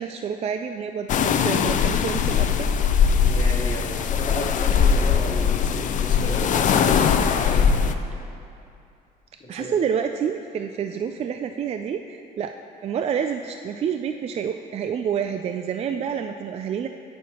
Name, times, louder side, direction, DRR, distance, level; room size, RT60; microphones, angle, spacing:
voice 1, 0.0-2.7 9.5-12.5 12.8-16.9, right 7 dB, 40° right, 6 dB, 0.3 m, -28 dB
sound 1, 1.1-7.9, left 7 dB, 50° left, 0.5 m, -20 dB
voice 2, 3.2-7.6 9.6-9.7, left 1 dB, 25° left, -3 dB, 1.9 m, -33 dB
17.5 x 6.3 x 2.9 m, 2.6 s
cardioid pair, 110°, 17 cm